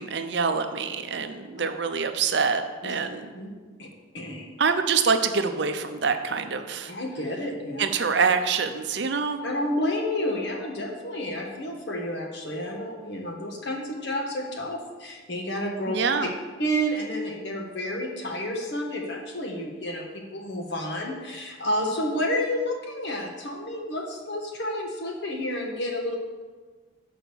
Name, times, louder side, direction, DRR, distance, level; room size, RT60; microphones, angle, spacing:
voice 1, 0.0-3.3 4.6-6.9 7.8-9.4 15.9-16.3, right 5 dB, 60° right, 8 dB, 0.6 m, -25 dB
voice 2, 4.1-4.4 6.9-7.8 9.4-16.0 16.6-26.2, equal, 55° left, 1 dB, 1.3 m, -30 dB
6.4 x 5.0 x 6.9 m, 1.4 s
head